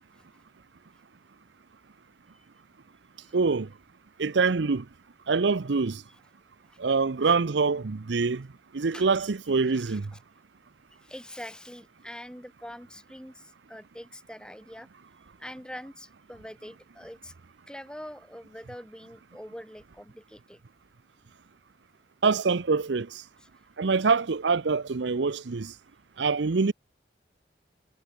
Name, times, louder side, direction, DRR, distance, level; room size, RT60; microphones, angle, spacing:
voice 1, 0.1-0.4 0.9-1.0 3.2-3.4 6.1-6.2 6.6-6.8 7.2-7.4 8.9-10.2 10.9-14.9 15.4-17.3 17.7-20.6 23.4-23.7, equal, 5° left, 2.1 m, -45 dB
voice 2, 3.3-3.7 4.2-4.9 5.3-6.0 6.8-8.5 8.7-10.1 22.2-23.2 23.8-25.7 26.2-26.7, right 4 dB, 75° right, 0.7 m, -25 dB
head